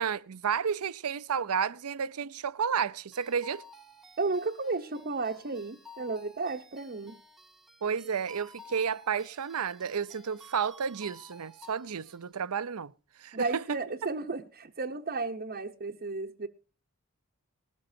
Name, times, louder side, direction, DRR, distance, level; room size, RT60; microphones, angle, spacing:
voice 1, 0.0-3.6 7.8-12.9 13.2-13.8, right 7 dB, 80° right, 0.6 m, -31 dB
sound 1, 3.1-12.2, left 2 dB, ahead, 0.9 m, -54 dB
voice 2, 4.2-7.2 13.3-16.5, right 3 dB, 45° right, 0.8 m, -33 dB
20.0 x 13.0 x 2.7 m
head